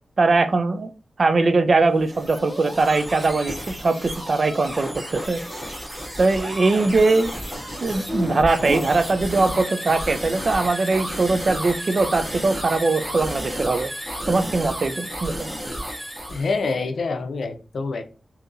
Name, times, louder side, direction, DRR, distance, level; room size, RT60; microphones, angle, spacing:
voice 1, 0.2-0.9 1.2-5.4 6.2-7.3 7.8-13.9 14.3-15.5, right 3 dB, 40° right, 10 dB, 0.4 m, -21 dB
sound 1, 1.9-16.5, equal, 20° right, 1.9 m, -32 dB
voice 2, 16.3-18.0, left 4 dB, 70° left, 7 dB, 0.5 m, -26 dB
3.9 x 2.7 x 2.5 m, 0.34 s
wide cardioid pair, 155°, 0 cm